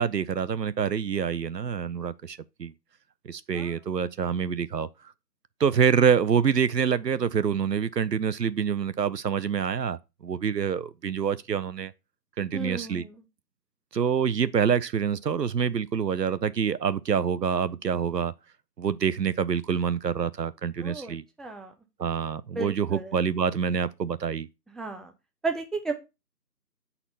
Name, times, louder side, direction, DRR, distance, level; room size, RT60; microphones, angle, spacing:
voice 1, 0.0-2.7 3.3-4.9 5.6-11.9 12.4-13.0 13.9-18.3 18.8-21.2 22.0-24.5, right 7 dB, 75° right, 0.6 m, -26 dB
voice 2, 12.5-13.2 20.8-21.7 22.5-23.2 24.7-25.1 25.4-25.9, right 3 dB, ahead, 0.5 m, -34 dB
7.9 x 4.2 x 4.1 m
figure-of-eight pair, 165°, 50 cm